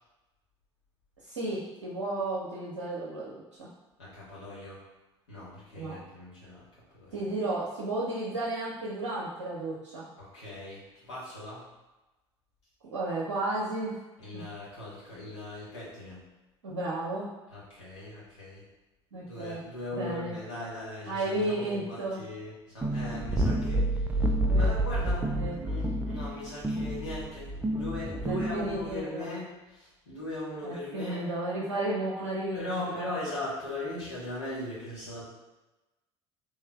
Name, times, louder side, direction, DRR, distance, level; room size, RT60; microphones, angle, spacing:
voice 1, 1.3-3.7 5.7-6.0 7.1-10.1 12.9-14.0 14.3-14.4 16.6-17.3 19.1-19.6 19.9-20.4 21.1-22.2 24.4-24.7 25.3-25.6 28.3-29.4 30.6-32.7 32.9-33.0, right 2 dB, 80° right, -6 dB, 0.6 m, -33 dB
voice 2, 4.0-4.8 5.3-6.6 6.9-7.2 10.2-11.7 14.2-16.2 17.5-18.6 19.2-29.4 29.7-31.3 32.5-35.2, left 1 dB, 80° left, -8 dB, 1.4 m, -39 dB
sound 1, 22.8-29.0, right 1 dB, 10° right, 0.4 m, -29 dB
3.5 x 3.1 x 2.2 m, 1.0 s
figure-of-eight pair, 60°, 15 cm